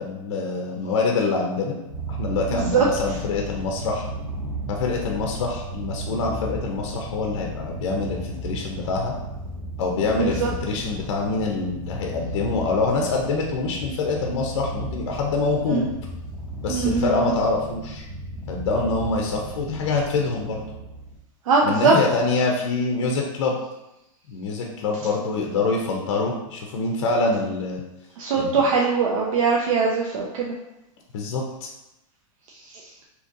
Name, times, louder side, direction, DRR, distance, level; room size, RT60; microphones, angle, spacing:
voice 1, 0.0-1.8 2.1-4.1 4.7-9.1 9.8-15.9 16.6-18.0 18.5-20.6 21.6-23.6 24.3-27.8 28.4-28.6 31.1-31.7, left 3 dB, 50° left, 1 dB, 0.5 m, -25 dB
Purr, 1.8-21.2, equal, 5° right, 0.6 m, -34 dB
voice 2, 2.5-2.9 10.2-10.5 15.7-15.9 16.7-17.1 21.5-21.9 28.2-30.5, right 5 dB, 70° right, -2 dB, 0.5 m, -21 dB
3.8 x 2.8 x 2.6 m, 0.92 s
supercardioid pair, 175°, 18 cm